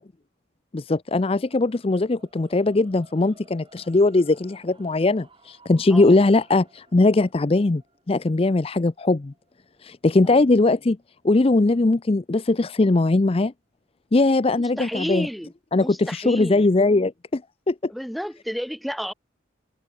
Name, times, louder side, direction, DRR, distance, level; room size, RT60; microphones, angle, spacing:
voice 1, 0.7-7.8 8.1-9.3 9.8-11.0 11.2-13.5 14.1-15.3 15.7-17.4 17.7-17.9, left 2 dB, 30° left, 0.5 m, -20 dB
sound 1, 1.2-11.4, right 3 dB, 25° right, 7.5 m, -57 dB
voice 2, 14.5-16.7 17.9-19.1, equal, ahead, 1.2 m, -32 dB
open air
head